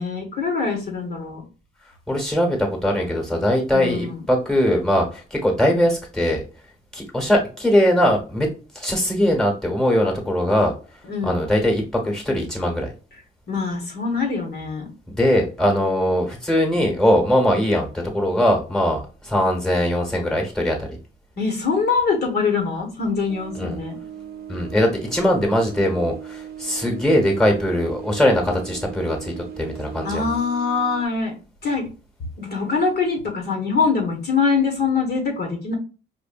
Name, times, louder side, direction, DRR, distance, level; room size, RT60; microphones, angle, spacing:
voice 1, 0.0-1.4 3.7-4.2 11.1-11.4 13.5-14.9 21.4-24.0 30.0-31.3 31.6-31.9 32.4-35.7, left 5 dB, 55° left, 2 dB, 1.4 m, -23 dB
voice 2, 2.1-6.4 6.9-8.5 8.7-10.7 11.2-12.9 15.1-20.9 23.6-23.8 24.5-30.3, equal, 5° left, 2 dB, 1.4 m, -21 dB
sound 1, 23.3-31.1, right 9 dB, 50° right, 0.8 m, -38 dB
5.0 x 2.5 x 2.5 m, 0.35 s
cardioid pair, 90°, 20 cm